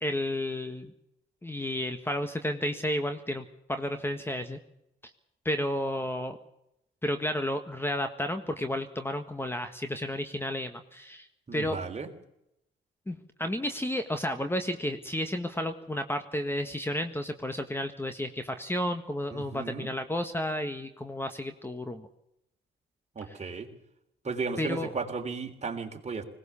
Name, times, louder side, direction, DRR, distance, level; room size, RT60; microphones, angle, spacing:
voice 1, 0.0-0.9 1.4-4.6 5.4-6.4 7.0-11.3 11.5-11.8 13.1-22.1 23.3-23.4 24.6-24.9, left 1 dB, 10° left, 8 dB, 1.6 m, -32 dB
voice 2, 11.5-12.1 19.3-19.9 23.2-23.7 24.2-26.2, right 4 dB, 35° right, 4 dB, 3.6 m, -35 dB
20.5 x 18.5 x 7.1 m, 0.82 s
cardioid pair, 90°, 20 cm